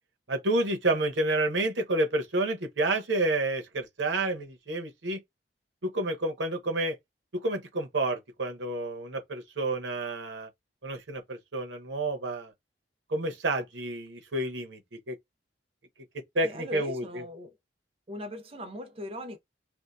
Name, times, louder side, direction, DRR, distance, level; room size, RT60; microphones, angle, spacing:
voice 1, 0.3-5.2 5.8-7.0 7.3-10.5 10.8-12.5 13.1-14.8 15.1-15.2 16.3-17.2, right 2 dB, 85° right, 0.9 m, -29 dB
voice 2, 16.4-17.6 18.1-19.4, left 1 dB, 35° right, 0.6 m, -39 dB
2.7 x 2.1 x 2.2 m
head